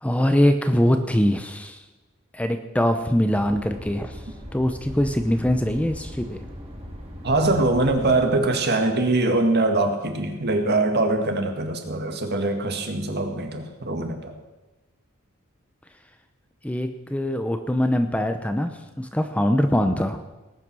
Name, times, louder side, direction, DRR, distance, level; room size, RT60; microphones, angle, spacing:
voice 1, 0.0-1.8 2.3-4.2 4.5-6.4 16.6-20.2, equal, 5° left, 7 dB, 0.7 m, -23 dB
sound 1, 3.3-8.3, equal, 30° right, 3.3 m, -39 dB
voice 2, 7.2-14.3, right 2 dB, 50° right, 5 dB, 2.0 m, -23 dB
19.0 x 9.2 x 6.2 m, 1.1 s
head